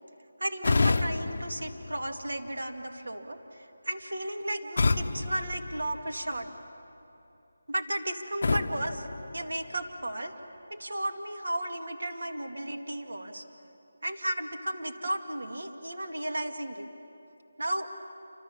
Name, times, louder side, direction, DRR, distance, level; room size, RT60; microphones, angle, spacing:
voice 1, 0.4-6.5 7.7-9.1 9.3-10.3 10.7-13.4 14.0-16.9 17.6-17.9, right 1 dB, 80° right, 5 dB, 2.3 m, -34 dB
sound 1, 0.6-2.6 4.8-6.5 8.4-10.0, left 3 dB, 40° left, 0.6 m, -30 dB
28.0 x 25.5 x 7.1 m, 2.9 s
figure-of-eight pair, 180°, 0 cm